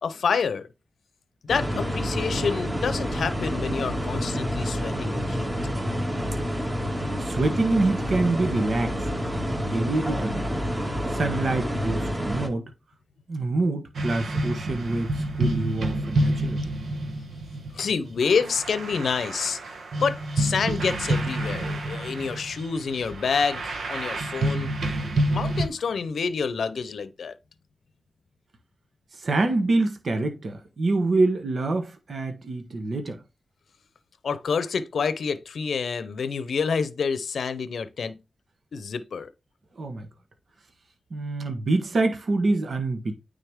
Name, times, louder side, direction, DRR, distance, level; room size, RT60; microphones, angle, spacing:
voice 1, 0.0-0.7 1.4-5.5 17.7-24.7 25.3-27.3 34.2-38.2 38.7-39.3, left 5 dB, 80° left, 0.7 m, -28 dB
sound 1, 1.5-12.5, equal, 25° right, 2.2 m, -28 dB
voice 2, 7.2-9.2 9.5-10.6 11.1-12.7 13.3-16.7 29.1-33.2 39.8-40.1 41.1-43.2, right 2 dB, 65° right, 1.2 m, -26 dB
sound 2, 13.9-25.7, right 1 dB, 80° right, 1.1 m, -28 dB
9.2 x 3.8 x 3.6 m
cardioid pair, 55°, 0 cm